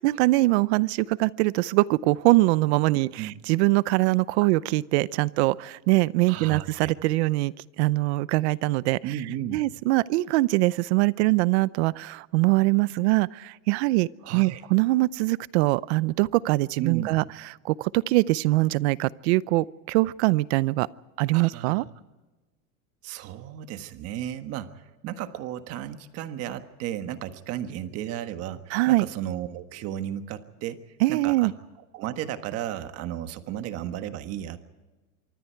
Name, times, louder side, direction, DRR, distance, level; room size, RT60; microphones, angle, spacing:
voice 1, 0.0-7.5 7.8-9.0 9.5-17.2 17.6-20.9 21.2-21.8 28.7-29.0 31.0-31.5, right 20 dB, 50° right, 20 dB, 0.7 m, -23 dB
voice 2, 6.3-6.9 9.0-9.6 14.2-14.6 16.8-17.2 21.3-21.9 23.0-30.8 31.1-31.5 31.9-34.7, right 11 dB, 35° right, 9 dB, 1.4 m, -34 dB
25.5 x 23.5 x 4.6 m, 1.2 s
supercardioid pair, 160°, 42 cm